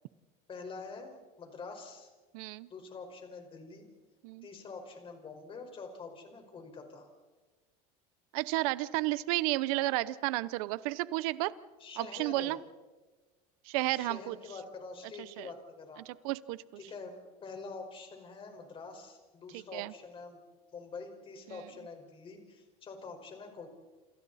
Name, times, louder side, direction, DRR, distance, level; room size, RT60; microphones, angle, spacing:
voice 1, 0.5-2.1 2.7-3.8 4.4-7.1 11.8-12.6 13.9-16.0 16.8-17.1 17.4-20.4 20.7-23.7, left 4 dB, 30° left, 4 dB, 5.0 m, -46 dB
voice 2, 2.3-2.7 4.2-4.5 8.3-11.5 12.0-12.6 13.7-14.4 15.2-15.5 16.2-16.6 19.5-19.9, right 18 dB, 80° right, 17 dB, 0.8 m, -32 dB
28.5 x 27.5 x 4.2 m, 1.2 s
supercardioid pair, 130°, 18 cm